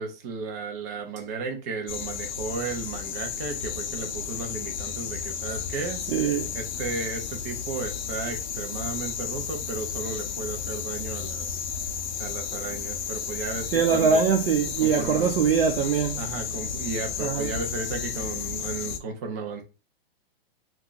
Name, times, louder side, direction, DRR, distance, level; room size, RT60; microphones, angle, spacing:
voice 1, 0.0-6.0 6.5-11.6 12.2-14.2 14.8-15.3 16.2-19.6, right 4 dB, 20° right, 0.3 m, -34 dB
sound 1, 1.9-19.0, left 7 dB, 50° left, 0.5 m, -33 dB
voice 2, 6.1-6.5 13.7-16.2 17.2-17.5, right 6 dB, 70° right, 0.6 m, -22 dB
2.8 x 2.3 x 3.8 m
hypercardioid pair, 155°, 30 cm